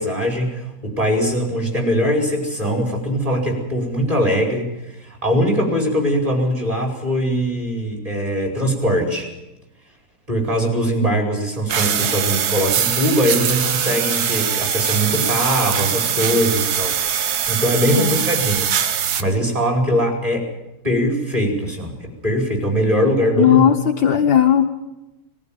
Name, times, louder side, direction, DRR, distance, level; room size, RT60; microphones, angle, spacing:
voice 1, 0.0-9.3 10.3-17.0 17.5-18.7 19.2-20.5 20.8-23.7, equal, 15° right, 0 dB, 4.8 m, -21 dB
sound 1, 11.7-19.2, right 8 dB, 60° right, 1.2 m, -22 dB
voice 2, 23.4-24.7, left 10 dB, 65° left, 4 dB, 1.7 m, -16 dB
21.0 x 14.5 x 9.0 m, 0.96 s
omnidirectional pair, 2.4 m